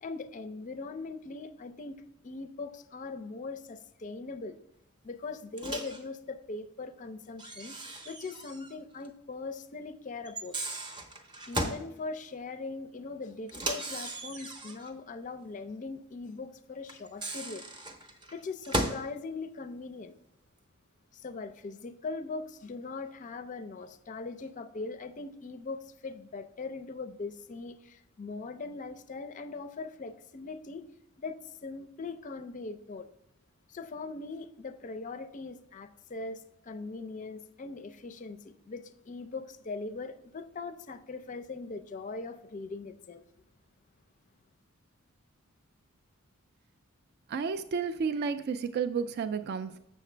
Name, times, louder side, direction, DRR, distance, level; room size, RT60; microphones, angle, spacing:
voice 1, 0.0-4.6 5.0-7.7 8.0-10.6 11.5-17.6 18.3-20.2 21.1-30.8 31.2-33.1 33.7-43.2, left 3 dB, 35° left, 0.4 m, -40 dB
Microwave oven, 5.6-6.0 7.4-8.8 9.0-9.1 10.3-11.9 13.5-14.9 16.9-19.1, right 1 dB, 20° right, 0.7 m, -36 dB
voice 2, 47.3-49.8, right 6 dB, 50° right, 0.3 m, -31 dB
7.5 x 6.5 x 3.3 m
head